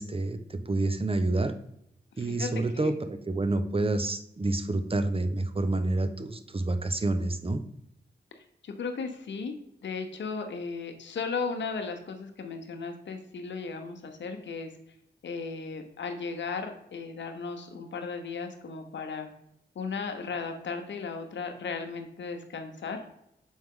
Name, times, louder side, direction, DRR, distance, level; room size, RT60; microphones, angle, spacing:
voice 1, 0.0-1.5 2.2-7.6, right 2 dB, 30° right, 9 dB, 0.8 m, -28 dB
voice 2, 2.2-2.9 8.3-9.5 9.8-14.7 15.2-19.3 19.7-23.0, left 4 dB, 90° left, 5 dB, 0.8 m, -36 dB
6.3 x 4.6 x 3.7 m, 0.78 s
cardioid pair, 40°, 18 cm